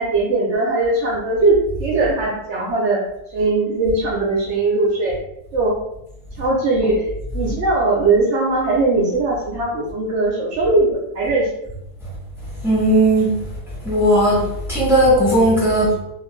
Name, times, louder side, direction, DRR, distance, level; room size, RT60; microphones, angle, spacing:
voice 1, 0.0-3.0 3.3-5.1 5.5-5.7 6.4-7.1 7.3-11.5, right 2 dB, 70° right, -2 dB, 0.7 m, -19 dB
voice 2, 12.6-13.3 13.8-14.4 14.7-16.0, right 1 dB, 5° right, -6 dB, 0.4 m, -15 dB
2.5 x 2.4 x 3.0 m, 0.84 s
omnidirectional pair, 1.7 m